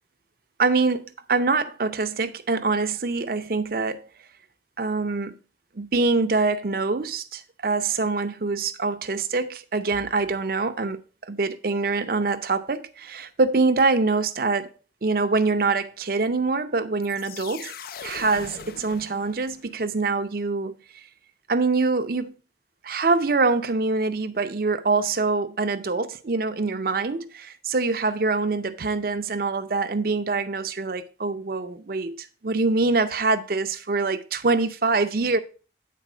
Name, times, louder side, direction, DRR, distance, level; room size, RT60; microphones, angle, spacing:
voice 1, 0.6-4.0 4.8-5.4 5.8-11.0 11.3-14.7 15.0-17.7 18.0-20.7 21.5-22.3 22.8-35.4, right 3 dB, 55° right, 0.6 m, -24 dB
sound 1, 17.0-19.8, left 7 dB, 55° left, 0.4 m, -41 dB
9.3 x 4.1 x 4.9 m
head